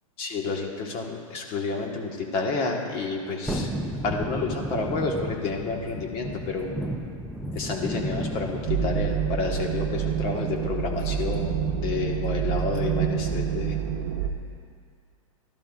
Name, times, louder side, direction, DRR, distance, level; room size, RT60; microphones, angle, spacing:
voice 1, 0.2-3.7 4.0-6.8 7.5-13.8, left 4 dB, 30° left, 1 dB, 1.3 m, -30 dB
Thunderstorm, 3.5-13.7 14.0-14.1, right 1 dB, ahead, 0.5 m, -35 dB
sound 1, 8.7-14.3, right 8 dB, 60° right, 0.9 m, -27 dB
16.0 x 12.0 x 2.4 m, 2.2 s
supercardioid pair, 155°, 18 cm